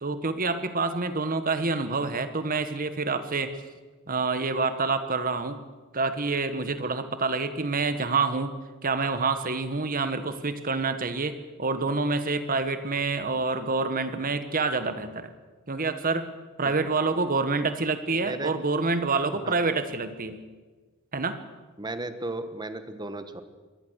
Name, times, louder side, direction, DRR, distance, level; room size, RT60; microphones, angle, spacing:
voice 1, 0.0-3.6 4.1-5.6 5.9-8.5 8.8-15.3 15.7-16.3 16.6-20.4 21.1-21.4, right 3 dB, 40° right, 10 dB, 1.5 m, -27 dB
voice 2, 18.2-18.5 19.4-19.6 21.8-23.4, right 2 dB, 20° right, 10 dB, 1.3 m, -35 dB
23.5 x 18.5 x 6.5 m, 1.3 s
head